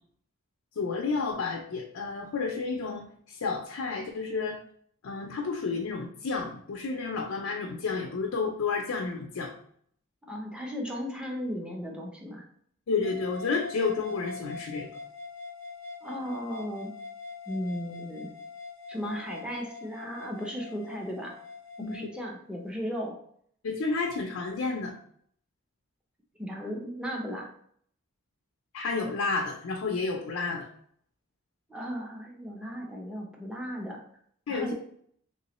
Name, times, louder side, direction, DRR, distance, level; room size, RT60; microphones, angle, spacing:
voice 1, 0.8-4.6 5.0-9.5 12.9-15.0 21.8-22.0 23.6-24.9 28.7-30.7 34.5-34.7, left 4 dB, 75° left, 1 dB, 0.4 m, -31 dB
voice 2, 10.3-12.4 16.0-16.9 17.5-18.3 18.9-21.3 21.8-23.1 26.4-27.5 31.7-34.0 34.5-34.7, equal, 5° right, -1 dB, 0.5 m, -36 dB
sound 1, 13.0-22.1, left 4 dB, 70° right, 0.7 m, -43 dB
3.1 x 3.0 x 2.9 m, 0.64 s
head